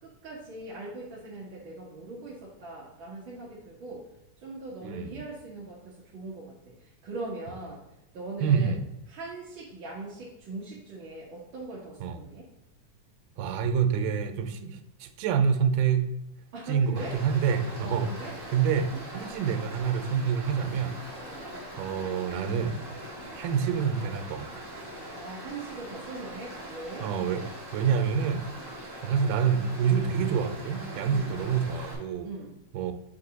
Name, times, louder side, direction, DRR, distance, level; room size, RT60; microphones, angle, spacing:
voice 1, 0.0-4.0 4.4-7.8 8.1-8.8 9.1-12.5 16.5-17.2 17.8-18.3 21.2-21.5 25.1-27.1 31.1-31.3 32.2-32.5, right 2 dB, 60° right, -6 dB, 1.4 m, -41 dB
voice 2, 4.8-5.2 8.4-8.8 12.0-12.2 13.4-16.1 16.7-18.1 18.5-21.0 21.8-22.8 23.4-24.5 27.0-27.4 27.7-28.4 29.0-32.3 32.7-32.9, right 7 dB, 90° right, 7 dB, 2.3 m, -27 dB
Stream, 16.9-31.9, right 1 dB, 10° right, 1.1 m, -42 dB
7.4 x 3.4 x 4.0 m, 0.92 s
omnidirectional pair, 3.7 m